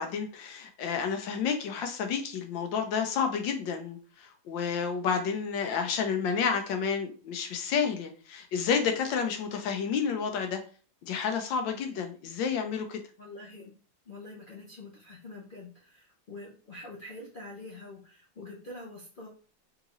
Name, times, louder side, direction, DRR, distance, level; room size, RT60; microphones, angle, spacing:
voice 1, 0.0-10.6 11.0-13.0, left 6 dB, 80° left, 6 dB, 1.4 m, -30 dB
voice 2, 13.2-13.7 14.1-19.3, left 2 dB, 55° left, -3 dB, 0.6 m, -45 dB
3.8 x 3.6 x 3.0 m, 0.39 s
omnidirectional pair, 2.0 m